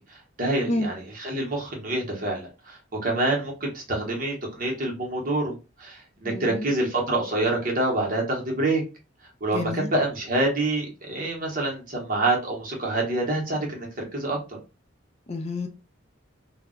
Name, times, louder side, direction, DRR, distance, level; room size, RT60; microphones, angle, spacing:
voice 1, 0.1-8.8 9.4-14.6, right 2 dB, 45° right, -1 dB, 0.8 m, -27 dB
voice 2, 6.2-6.7 9.5-9.9 15.3-15.7, left 1 dB, 30° left, 6 dB, 0.4 m, -29 dB
2.2 x 2.0 x 3.6 m, 0.30 s
head